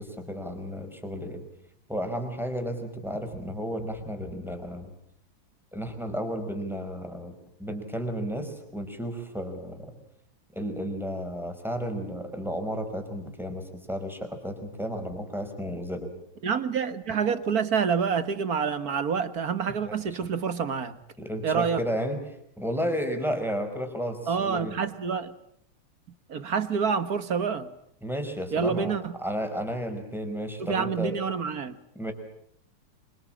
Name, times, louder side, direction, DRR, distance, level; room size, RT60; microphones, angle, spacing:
voice 1, 0.0-1.4 1.9-4.9 5.7-7.3 7.6-9.9 10.5-16.1 19.8-20.3 21.2-22.2 22.6-24.7 28.0-28.9 29.2-31.1 31.9-32.1, equal, ahead, 6 dB, 4.8 m, -33 dB
voice 2, 16.4-21.0 21.4-21.8 24.3-25.3 26.3-27.7 28.5-29.1 30.6-31.8, right 6 dB, 50° right, 12 dB, 1.7 m, -27 dB
26.0 x 25.5 x 8.8 m, 0.71 s
omnidirectional pair, 2.4 m